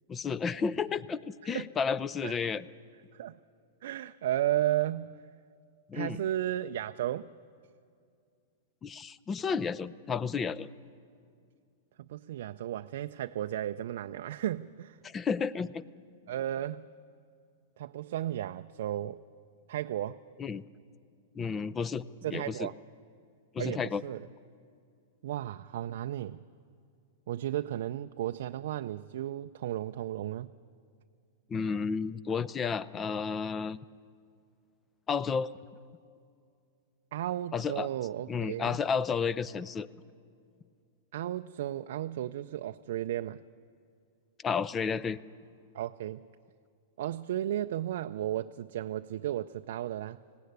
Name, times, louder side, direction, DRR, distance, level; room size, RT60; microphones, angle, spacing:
voice 1, 0.1-2.7 5.9-6.2 8.8-10.7 15.0-15.8 20.4-20.6 21.3-22.0 22.3-22.7 23.5-24.0 31.5-33.8 35.1-35.5 37.5-37.9 38.3-39.9 44.4-45.2, left 5 dB, 20° left, 19 dB, 0.5 m, -32 dB
voice 2, 3.8-5.2 5.9-7.3 12.0-15.0 16.3-16.9 17.8-19.2 19.7-20.2 22.2-22.8 23.6-24.2 25.2-26.5 27.3-30.5 37.1-38.8 41.1-43.4 45.7-46.3 47.0-50.2, right 12 dB, 70° right, 8 dB, 0.4 m, -34 dB
18.5 x 16.5 x 9.5 m, 2.3 s
hypercardioid pair, 135°, 0 cm